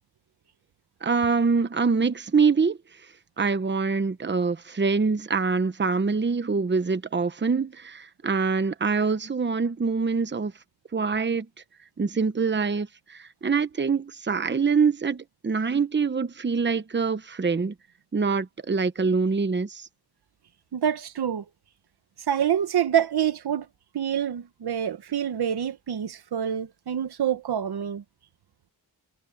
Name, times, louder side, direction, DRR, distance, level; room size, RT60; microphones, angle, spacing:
voice 1, 1.0-2.8 3.4-10.5 10.9-11.5 12.0-17.7 18.1-19.9, right 5 dB, 30° right, 1.0 m, -25 dB
voice 2, 20.7-21.4 22.3-23.7 23.9-28.0, right 9 dB, 80° right, 1.2 m, -26 dB
wide cardioid pair, 105°, 39 cm